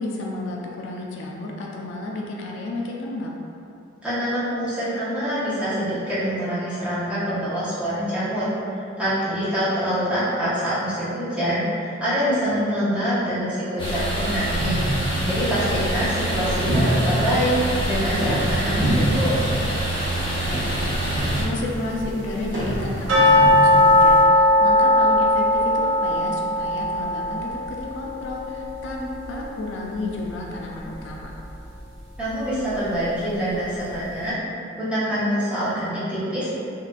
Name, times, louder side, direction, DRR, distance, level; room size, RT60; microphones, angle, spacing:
voice 1, 0.0-3.3 16.9-17.5 20.6-21.0 21.3-31.4, left 2 dB, 70° left, -1 dB, 0.4 m, -32 dB
voice 2, 4.0-8.6 9.0-14.8 15.2-19.3 32.2-34.4 34.8-36.5, equal, 5° right, -12 dB, 0.8 m, -25 dB
sound 1, 13.8-21.4, right 1 dB, 25° left, 0.6 m, -26 dB
sound 2, 14.6-24.2, right 1 dB, 40° right, 0.9 m, -28 dB
sound 3, 23.1-29.9 30.2-30.3 30.8-30.9 31.5-31.6, left 1 dB, 80° right, 0.7 m, -19 dB
3.6 x 2.5 x 2.4 m, 2.6 s
head